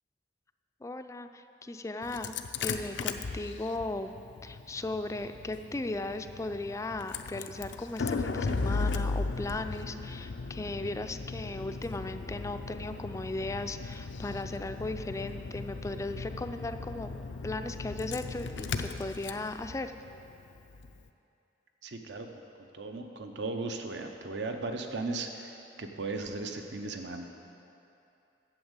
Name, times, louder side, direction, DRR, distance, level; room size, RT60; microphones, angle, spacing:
voice 1, 0.8-2.3 2.6-17.1 17.4-19.9, left 2 dB, 15° left, 8 dB, 0.3 m, -37 dB
Engine starting, 2.0-21.0, left 4 dB, 85° left, 0.5 m, -37 dB
voice 2, 21.8-22.3 22.7-27.3, right 3 dB, 75° right, 5 dB, 0.8 m, -37 dB
8.7 x 7.1 x 8.1 m, 2.8 s
head